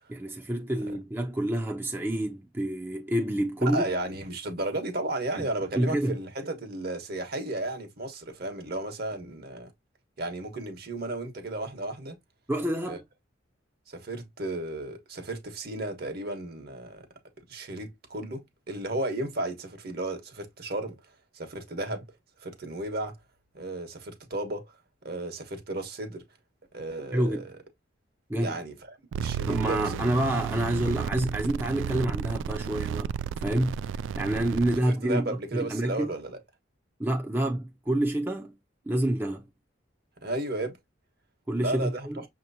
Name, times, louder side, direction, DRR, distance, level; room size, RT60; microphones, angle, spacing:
voice 1, 0.1-3.8 5.8-6.2 12.5-13.0 27.1-27.4 28.3-28.5 29.5-33.1 33.4-33.8 34.1-36.1 37.0-38.5 38.9-39.5 41.5-42.2, right 1 dB, 10° right, 0.6 m, -28 dB
voice 2, 3.6-9.7 10.2-12.2 12.9-13.0 13.9-17.1 17.5-21.0 21.3-22.0 22.4-23.1 23.5-24.8 25.0-26.2 26.7-27.5 28.4-30.0 34.8-36.4 40.2-40.8 41.6-42.3, right 2 dB, 55° right, 1.2 m, -34 dB
sound 1, 29.1-34.8, right 7 dB, 80° right, 0.3 m, -33 dB
6.3 x 2.9 x 2.7 m
head